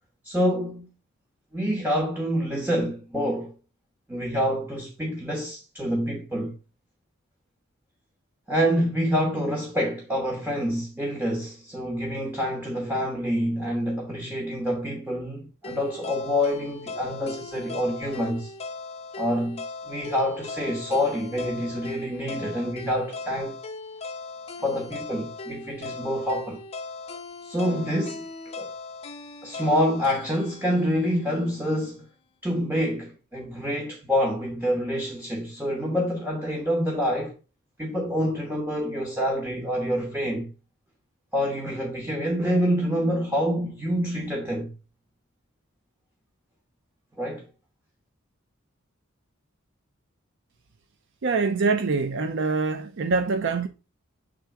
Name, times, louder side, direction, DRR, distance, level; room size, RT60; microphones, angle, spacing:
voice 1, 0.2-0.9 1.5-3.5 4.1-6.5 8.5-18.5 19.2-23.6 24.6-26.6 27.4-28.3 28.6-28.7 29.4-32.1 32.4-37.3 37.8-40.5 41.3-44.7 47.2-47.5, equal, 10° right, 1.0 m, -27 dB
sound 1, 15.6-31.7, left 3 dB, 30° left, 0.7 m, -39 dB
voice 2, 51.2-53.7, right 4 dB, 60° right, 0.5 m, -24 dB
6.9 x 3.8 x 4.5 m
head